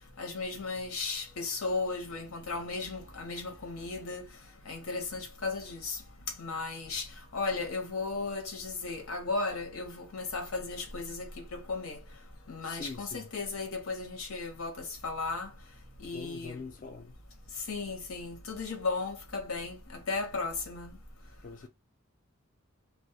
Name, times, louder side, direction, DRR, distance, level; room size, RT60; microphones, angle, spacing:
voice 1, 0.2-4.2 4.7-6.0 6.4-7.1 7.3-12.0 12.5-15.5 16.0-16.6 17.7-21.0, left 3 dB, 90° left, 0.8 m, -35 dB
voice 2, 12.6-13.2 16.1-17.2 21.4-21.7, left 4 dB, 40° left, 0.3 m, -43 dB
2.2 x 2.1 x 2.7 m
head